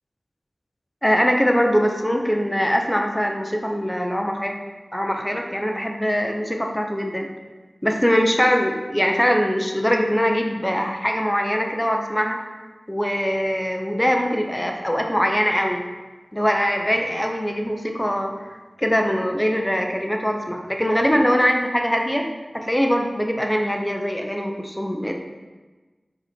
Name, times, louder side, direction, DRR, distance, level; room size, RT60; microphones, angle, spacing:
voice 1, 1.0-4.6 4.9-7.3 7.8-12.4 12.9-15.8 16.3-18.5 18.8-22.3 22.5-25.1, equal, 10° left, 2 dB, 0.8 m, -22 dB
7.1 x 4.3 x 4.4 m, 1.3 s
wide cardioid pair, 50°, 0 cm